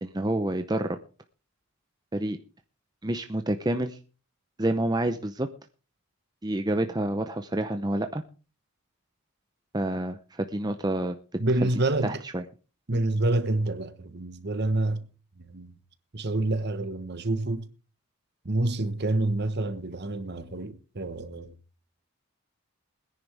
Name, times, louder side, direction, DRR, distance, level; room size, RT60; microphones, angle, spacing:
voice 1, 0.0-1.0 2.1-2.4 3.0-4.0 4.6-5.5 6.4-8.2 9.7-11.1 12.0-12.4, right 1 dB, 20° right, 0.7 m, -28 dB
voice 2, 11.4-12.2 12.9-15.1 15.4-15.7 16.1-17.7 18.4-21.5, right 2 dB, 50° right, 1.2 m, -28 dB
21.5 x 10.5 x 3.4 m
head